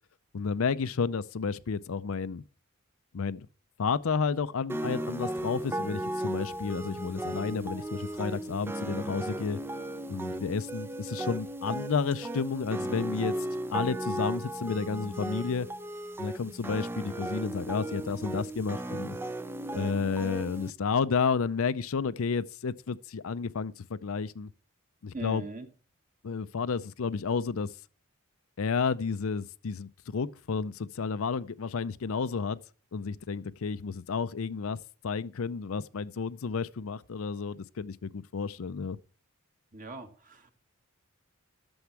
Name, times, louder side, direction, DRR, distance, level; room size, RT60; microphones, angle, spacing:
voice 1, 0.3-2.4 3.1-3.5 3.8-9.6 10.1-13.3 13.7-15.7 16.2-19.2 19.7-24.5 25.0-25.4 26.2-27.7 28.6-32.6 32.9-34.8 35.0-39.0, left 5 dB, 65° left, 0.5 m, -31 dB
sound 1, 4.7-20.7, right 1 dB, 10° right, 0.4 m, -36 dB
voice 2, 25.1-25.7 39.7-40.5, right 3 dB, 35° right, 1.5 m, -40 dB
11.5 x 7.1 x 4.6 m
head